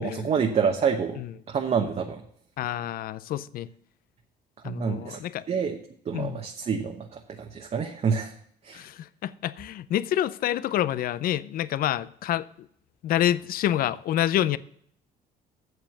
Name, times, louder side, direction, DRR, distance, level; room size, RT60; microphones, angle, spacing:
voice 1, 0.0-1.2 1.5-2.2 4.6-5.2 5.5-5.8 6.1-8.3 8.6-8.8, right 6 dB, 40° right, 1.0 m, -27 dB
voice 2, 2.6-3.7 4.6-5.4 6.1-6.4 8.7-12.5 13.0-14.6, left 12 dB, 60° left, 0.5 m, -27 dB
7.9 x 7.1 x 7.1 m
cardioid pair, 110°, 17 cm